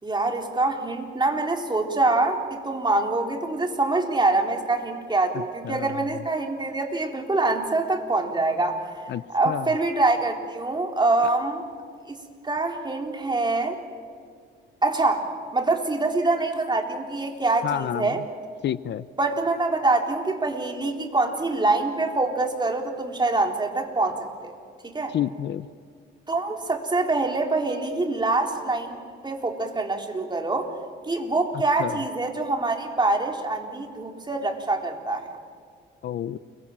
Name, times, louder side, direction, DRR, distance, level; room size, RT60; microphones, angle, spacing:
voice 1, 0.0-8.8 9.3-11.6 12.4-13.8 14.8-15.3 15.5-18.2 19.2-24.6 24.8-25.1 26.3-30.7 31.1-35.3, right 2 dB, 20° right, 2 dB, 4.0 m, -25 dB
voice 2, 5.3-6.2 9.1-9.7 17.6-18.2 18.6-19.1 25.1-25.7 31.5-32.0 36.0-36.4, left 11 dB, 60° left, 16 dB, 0.7 m, -30 dB
29.5 x 22.5 x 7.5 m, 2.1 s
cardioid pair, 90°, 20 cm